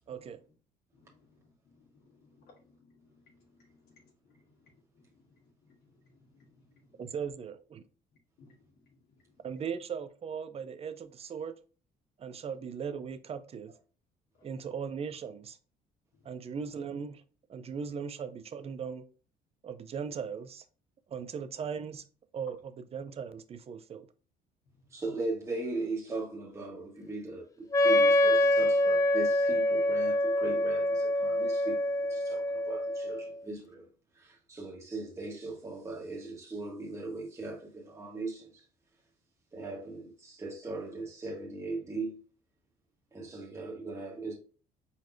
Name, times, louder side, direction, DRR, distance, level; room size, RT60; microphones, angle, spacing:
voice 1, 0.1-0.4 7.0-7.8 9.4-11.6 12.2-13.7 14.4-15.6 16.2-17.2 17.5-19.0 19.6-20.6 21.1-22.0 22.3-24.1, right 6 dB, 35° right, 0.6 m, -38 dB
voice 2, 0.9-7.1 8.4-9.0 9.3-9.4 14.4-14.5 16.2-16.3 24.7-24.8, left 3 dB, 70° left, 1.6 m, -64 dB
voice 3, 24.9-33.9 34.1-38.6 39.5-42.2 43.1-44.3, right 2 dB, 15° right, 1.4 m, -39 dB
Wind instrument woodwind instrument, 27.7-33.4, left 1 dB, 20° left, 0.4 m, -26 dB
4.7 x 4.0 x 2.7 m
cardioid pair, 110°, 17 cm